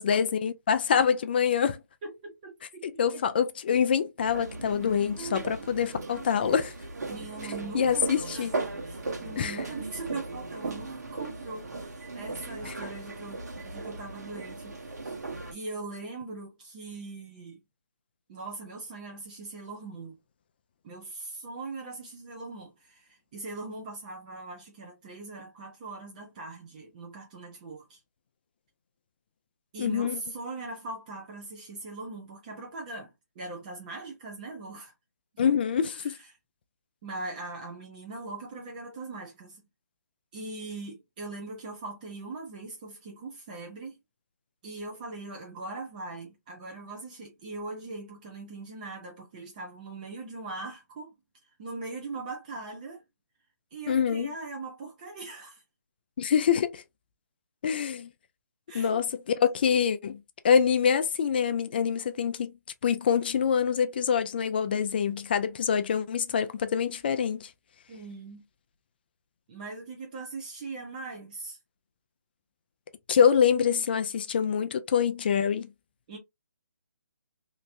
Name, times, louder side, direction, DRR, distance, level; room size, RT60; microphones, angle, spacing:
voice 1, 0.0-1.8 2.8-6.7 7.7-8.6 9.4-9.6 29.8-30.2 35.4-36.2 53.9-54.3 56.2-56.8 57.6-58.1 58.7-59.0 59.4-62.5 62.8-67.5 73.1-75.7, left 7 dB, 35° left, 0.4 m, -25 dB
voice 2, 2.0-2.8 3.1-3.2 5.2-5.6 7.1-8.5 8.8-15.2 15.5-17.6 18.3-20.2 20.8-28.0 29.7-34.9 35.3-35.6 35.8-36.4 37.0-39.6 40.3-44.0 44.6-51.1 51.6-53.0 53.7-55.6 58.7-59.0 67.9-68.4 69.5-71.6 76.1-76.2, right 3 dB, 25° right, 0.9 m, -40 dB
sound 1, 4.2-15.5, right 3 dB, 65° right, 1.3 m, -37 dB
3.0 x 2.9 x 2.6 m
hypercardioid pair, 160°, 10 cm